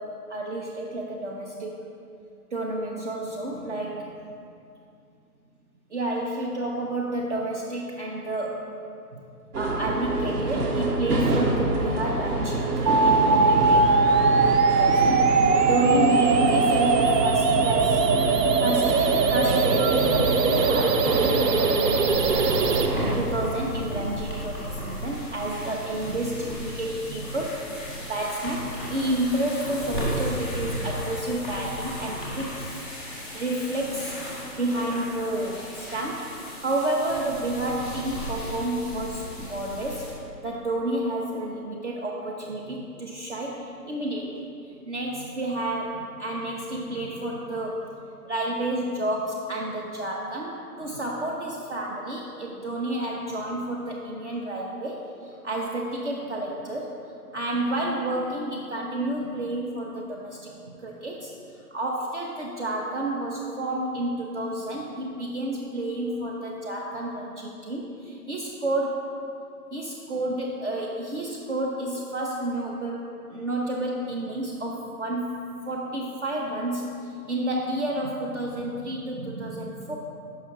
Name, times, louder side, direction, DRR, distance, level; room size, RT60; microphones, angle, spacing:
voice 1, 0.0-1.8 2.5-4.3 5.9-8.7 9.1-9.2 9.6-18.0 18.6-19.0 19.3-22.8 23.2-27.6 28.0-32.7 33.3-34.2 34.5-40.1 40.4-44.4 44.8-47.9 48.2-56.9 57.3-69.1 69.7-75.3 75.7-80.0, right 1 dB, 50° right, -2 dB, 0.6 m, -30 dB
sound 1, 9.5-23.2, right 2 dB, 70° right, 1.0 m, -26 dB
sound 2, 12.9-22.9, right 4 dB, 90° right, 0.6 m, -21 dB
sound 3, 22.1-40.1, equal, ahead, 0.7 m, -35 dB
5.6 x 5.4 x 3.7 m, 2.5 s
hypercardioid pair, 155°, 48 cm